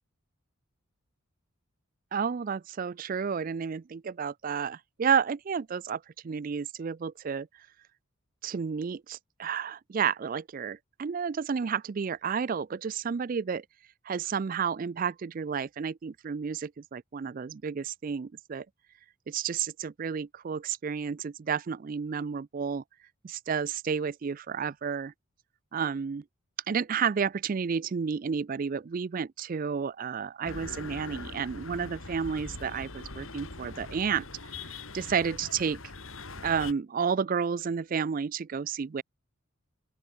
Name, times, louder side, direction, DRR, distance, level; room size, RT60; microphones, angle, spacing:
voice 1, 2.1-7.5 8.4-13.6 14.1-18.7 19.3-22.8 23.2-25.1 25.7-26.2 26.7-34.2 34.5-35.8 36.4-39.0, right 6 dB, 40° right, 0.3 m, -31 dB
sound 1, 30.4-36.7, left 3 dB, 65° left, 3.5 m, -42 dB
open air
head